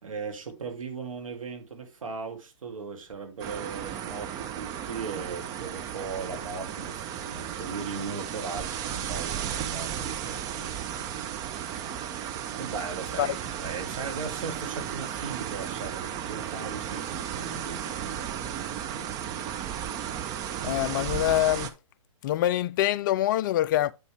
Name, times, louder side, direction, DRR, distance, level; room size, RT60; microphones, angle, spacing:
voice 1, 0.0-11.1 11.7-12.1 12.6-19.5, right 5 dB, 75° right, 2.1 m, -38 dB
sound 1, 3.4-21.7, right 9 dB, 20° right, 0.6 m, -34 dB
voice 2, 20.6-21.7 22.2-23.9, left 13 dB, 40° left, 0.4 m, -25 dB
8.7 x 5.5 x 3.3 m
hypercardioid pair, 140°, 17 cm